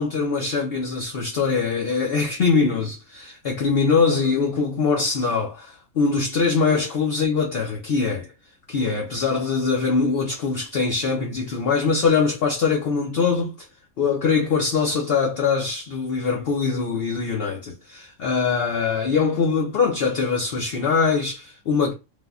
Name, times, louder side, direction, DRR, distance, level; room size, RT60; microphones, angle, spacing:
voice 1, 0.0-8.3 8.7-13.6 14.0-21.9, left 5 dB, 55° left, 0.8 m, -22 dB
3.3 x 2.2 x 2.4 m
omnidirectional pair, 1.4 m